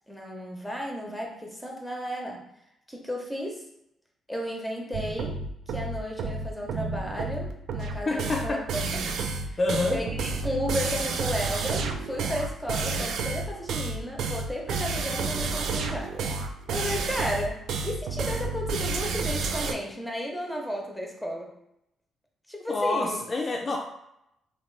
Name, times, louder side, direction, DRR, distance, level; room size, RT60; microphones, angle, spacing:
voice 1, 0.1-2.4 2.9-3.6 4.3-8.6 9.4-9.6 9.9-16.2 16.7-21.5 22.5-23.2, equal, ahead, 0 dB, 0.7 m, -33 dB
sound 1, 4.9-19.7, right 4 dB, 75° right, 0.3 m, -30 dB
voice 2, 8.1-8.6 9.6-10.1 22.7-23.8, left 2 dB, 35° left, 1 dB, 0.3 m, -27 dB
2.8 x 2.3 x 3.2 m, 0.81 s
cardioid pair, 90°, 0 cm